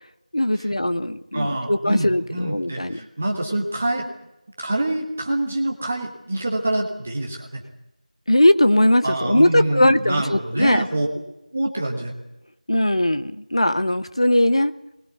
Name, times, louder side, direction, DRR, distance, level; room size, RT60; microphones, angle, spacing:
voice 1, 0.3-3.0 8.3-10.8 12.7-14.7, left 1 dB, 45° left, 12 dB, 1.0 m, -19 dB
voice 2, 1.3-4.1 4.6-7.6 9.0-11.1 11.5-12.1, right 1 dB, 10° right, 1 dB, 0.9 m, -26 dB
20.0 x 20.0 x 8.1 m, 0.92 s
figure-of-eight pair, 175°, 4 cm